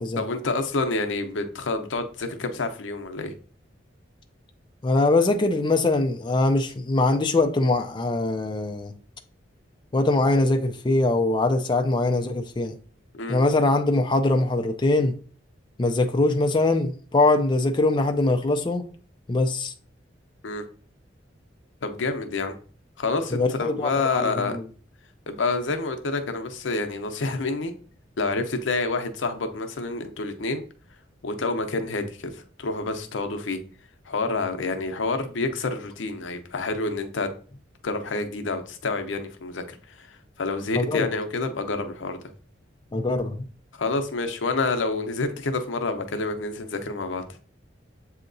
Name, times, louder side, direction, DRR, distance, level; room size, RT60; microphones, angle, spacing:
voice 1, 0.2-3.3 13.1-13.4 20.4-20.6 21.8-22.5 23.0-24.5 25.3-27.7 28.2-30.6 31.2-33.6 34.1-37.3 37.8-42.2 43.7-47.2, left 3 dB, 85° left, 0.6 m, -28 dB
voice 2, 4.8-8.9 9.9-12.8 13.3-15.1 15.8-18.9 19.3-19.7 23.3-24.6 40.8-41.1 42.9-43.5, left 2 dB, 25° left, 0.4 m, -22 dB
7.3 x 2.8 x 2.6 m
head